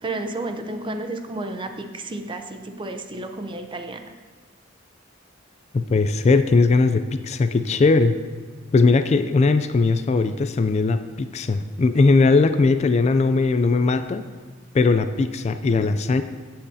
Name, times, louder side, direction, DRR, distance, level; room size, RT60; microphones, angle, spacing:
voice 1, 0.0-4.1, right 2 dB, 25° right, 7 dB, 0.6 m, -32 dB
voice 2, 5.7-8.2 8.7-14.2 14.7-16.2, left 3 dB, 35° left, 10 dB, 0.3 m, -19 dB
15.0 x 7.8 x 2.7 m, 1.4 s
head